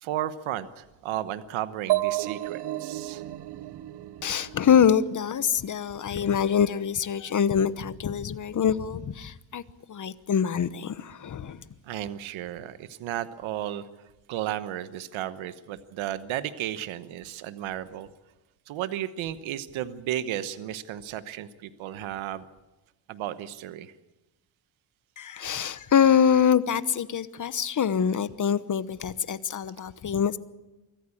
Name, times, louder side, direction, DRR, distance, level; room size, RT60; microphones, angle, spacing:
voice 1, 0.0-3.2 11.8-13.9 14.3-18.1 18.7-22.5 23.1-23.9, right 12 dB, 85° right, 12 dB, 1.1 m, -34 dB
sound 1, 1.9-5.6, right 16 dB, 60° right, 0.8 m, -32 dB
voice 2, 4.2-9.6 9.9-11.6 25.2-30.4, left 8 dB, 40° left, 15 dB, 1.1 m, -24 dB
24.5 x 14.5 x 8.6 m, 1.1 s
cardioid pair, 90°, 47 cm